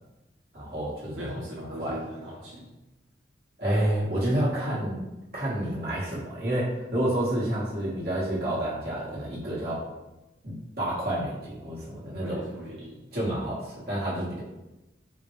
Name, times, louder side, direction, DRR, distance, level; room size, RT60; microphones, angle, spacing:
voice 1, 0.5-1.4 1.8-2.0 3.6-5.0 5.3-9.8 10.4-12.4 13.1-14.4, right 1 dB, 55° right, -7 dB, 1.2 m, -29 dB
voice 2, 1.1-2.7 12.1-13.0, equal, 85° right, -6 dB, 0.7 m, -39 dB
3.8 x 2.2 x 3.0 m, 1.0 s
head